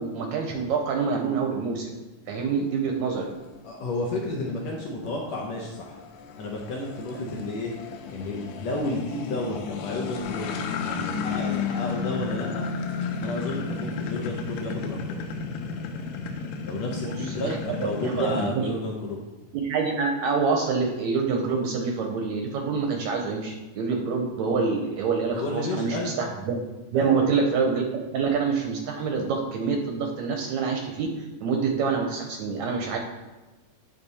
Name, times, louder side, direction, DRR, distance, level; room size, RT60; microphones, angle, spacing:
voice 1, 0.0-1.9 2.3-3.3 7.2-7.5 17.0-18.7 19.5-26.6 26.9-27.8 28.1-33.0, right 5 dB, 75° right, 2 dB, 1.7 m, -26 dB
sound 1, 2.4-18.5, left 5 dB, 90° left, 2.3 m, -33 dB
voice 2, 3.6-5.9 6.4-7.7 8.1-10.6 10.9-12.7 13.2-15.2 16.6-19.2 25.3-26.1 26.9-27.3, left 2 dB, 70° left, -1 dB, 1.8 m, -32 dB
10.0 x 3.4 x 4.1 m, 1.2 s
omnidirectional pair, 3.8 m